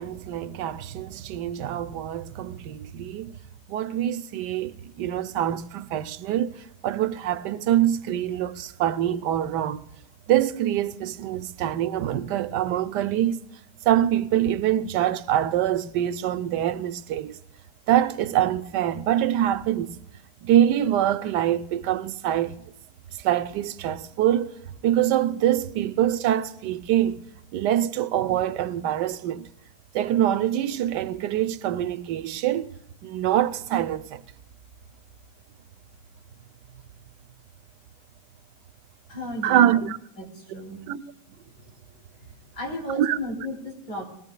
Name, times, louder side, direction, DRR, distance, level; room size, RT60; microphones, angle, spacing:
voice 1, 0.0-3.4 3.7-9.8 10.3-13.4 13.8-17.4 17.9-20.0 20.4-22.6 23.1-24.5 24.8-27.2 27.5-29.5 29.9-32.7 33.0-34.2 39.4-40.0 40.9-41.0 43.0-43.2, right 11 dB, 80° right, 1.3 m, -24 dB
voice 2, 39.1-39.7 40.2-40.8 41.6-41.8 42.2-44.0, equal, 80° left, 3.9 m, -34 dB
21.5 x 18.0 x 2.2 m
omnidirectional pair, 1.8 m